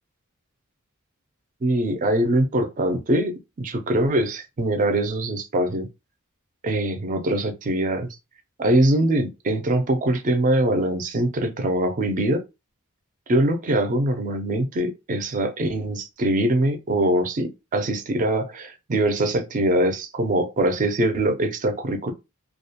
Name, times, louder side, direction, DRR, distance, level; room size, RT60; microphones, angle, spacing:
voice 1, 1.6-5.9 6.6-8.1 8.6-12.4 13.3-22.1, right 1 dB, 35° right, 0.4 m, -23 dB
2.3 x 2.1 x 2.8 m
head